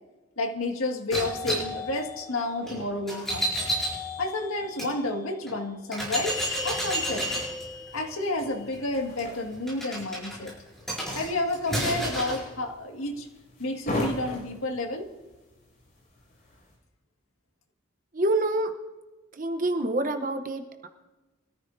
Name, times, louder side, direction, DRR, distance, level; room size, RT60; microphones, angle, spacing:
voice 1, 0.4-3.5 4.2-7.3 7.9-10.6 11.1-13.3 13.6-15.1, left 2 dB, 90° left, 2 dB, 2.0 m, -30 dB
sound 1, 1.1-4.9 5.5-5.6 5.9-12.4, equal, ahead, 5.8 m, -32 dB
sound 2, 6.4-16.7, left 1 dB, 40° left, 6.2 m, -40 dB
voice 2, 18.1-18.7 19.3-20.9, right 1 dB, 40° right, 7 dB, 0.9 m, -27 dB
24.5 x 14.0 x 2.7 m, 1.2 s
head